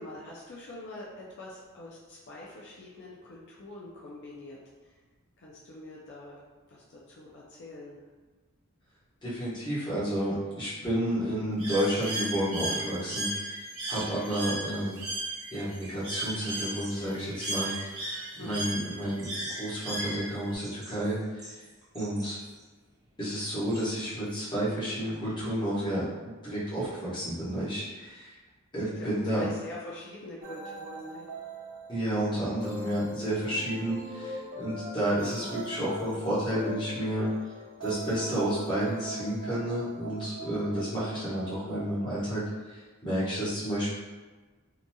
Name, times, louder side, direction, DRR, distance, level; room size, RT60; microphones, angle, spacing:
voice 1, 0.0-5.0 5.4-6.4 6.7-8.0 18.4-18.7 28.8-31.3, left 1 dB, 50° left, -5 dB, 0.4 m, -44 dB
voice 2, 9.2-13.3 13.5-15.0 15.5-21.6 21.9-22.4 23.2-26.0 26.4-28.3 28.7-29.4 31.9-37.3 37.8-42.4 42.7-43.9, right 1 dB, 20° left, -10 dB, 1.0 m, -31 dB
Bird, 11.6-20.6, right 1 dB, 75° right, 1.0 m, -36 dB
sound 1, 16.6-24.4, right 1 dB, 15° right, 0.3 m, -51 dB
sound 2, 30.4-42.1, equal, 90° right, 0.7 m, -41 dB
2.8 x 2.6 x 2.2 m, 1.3 s
head